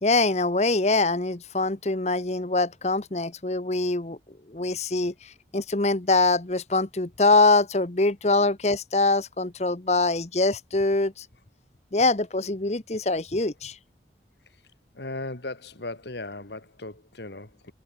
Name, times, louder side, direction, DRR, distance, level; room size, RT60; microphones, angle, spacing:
voice 1, 0.0-4.2 4.5-11.3 11.9-13.8, left 2 dB, 35° left, 1.0 m, -24 dB
voice 2, 14.9-17.7, left 2 dB, 70° left, 2.3 m, -37 dB
head